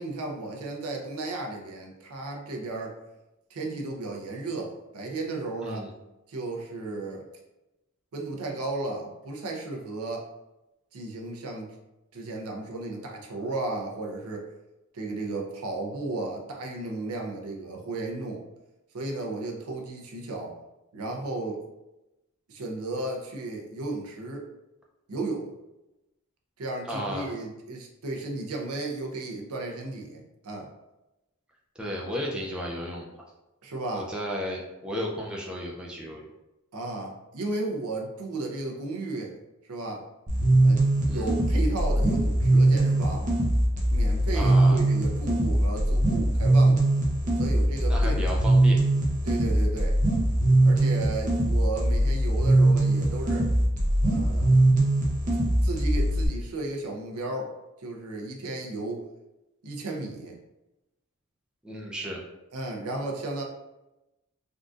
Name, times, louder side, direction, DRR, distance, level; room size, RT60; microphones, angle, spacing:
voice 1, 0.0-3.0 3.5-5.9 6.3-7.2 8.1-10.3 10.9-11.7 12.1-14.5 14.9-18.4 18.9-20.5 20.9-21.6 22.5-24.5 25.1-25.5 26.6-30.7 33.6-34.1 36.7-39.4 39.7-40.1 40.6-43.3 43.9-46.8 47.4-48.4 49.2-50.0 50.6-53.5 54.0-54.5 55.6-57.5 57.8-59.0 59.6-60.3 62.5-63.4, right 2 dB, 85° right, 1 dB, 0.6 m, -34 dB
voice 2, 26.9-27.3 31.8-33.3 33.9-36.3 41.1-41.3 44.3-44.8 47.9-48.8 61.6-62.2, equal, 5° right, -3 dB, 0.4 m, -34 dB
sound 1, 40.3-56.3, right 1 dB, 35° right, 0.7 m, -22 dB
3.7 x 2.5 x 2.4 m, 0.96 s
head